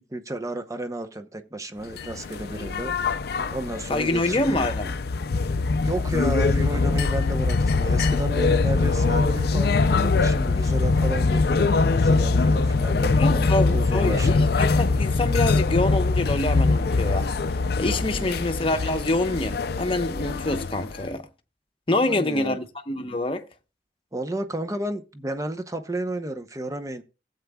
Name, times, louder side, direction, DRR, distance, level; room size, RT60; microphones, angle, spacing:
voice 1, 0.1-2.9 3.5-4.7 5.8-14.5 18.1-18.4 22.1-22.6 24.1-27.0, right 1 dB, 20° right, 0.8 m, -32 dB
sound 1, 1.9-21.1, left 3 dB, 60° left, 0.5 m, -23 dB
voice 2, 3.9-4.9 13.1-17.3 17.8-21.2 21.9-23.4, left 2 dB, 30° left, 0.9 m, -26 dB
16.5 x 8.1 x 2.3 m
head